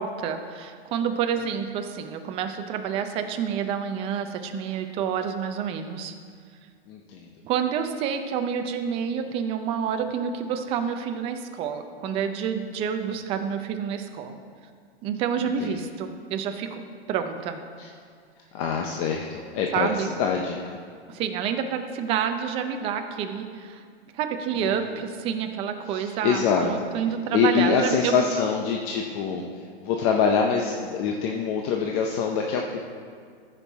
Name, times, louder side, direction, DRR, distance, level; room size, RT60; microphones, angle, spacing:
voice 1, 0.0-6.1 7.4-14.4 15.0-16.8 17.1-17.6 19.7-20.1 21.1-23.8 24.1-28.2, right 7 dB, 20° right, 6 dB, 0.4 m, -28 dB
voice 2, 6.9-7.3 15.4-15.8 17.8-17.9 18.5-20.8 24.5-25.0 25.9-26.7 27.3-29.4 29.8-32.8, left 6 dB, 30° left, 1 dB, 0.6 m, -25 dB
14.5 x 5.5 x 4.1 m, 2.1 s
hypercardioid pair, 150°, 32 cm